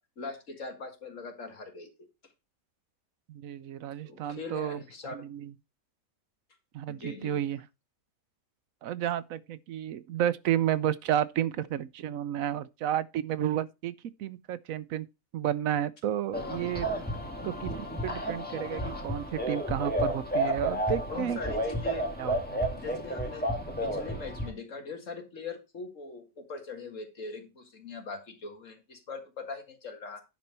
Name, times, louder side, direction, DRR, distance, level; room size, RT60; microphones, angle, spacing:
voice 1, 0.2-1.9 4.0-5.3 6.9-7.3 17.4-17.5 21.1-22.1 22.7-30.2, left 3 dB, 65° left, 2.2 m, -41 dB
voice 2, 3.3-5.5 6.7-7.6 8.8-13.9 14.2-15.1 15.3-16.9 17.4-17.7 18.0-21.4 22.2-22.6, right 11 dB, 80° right, 1.1 m, -31 dB
sound 1, 16.3-24.5, right 1 dB, 5° left, 1.8 m, -32 dB
10.5 x 4.4 x 5.3 m
omnidirectional pair, 1.4 m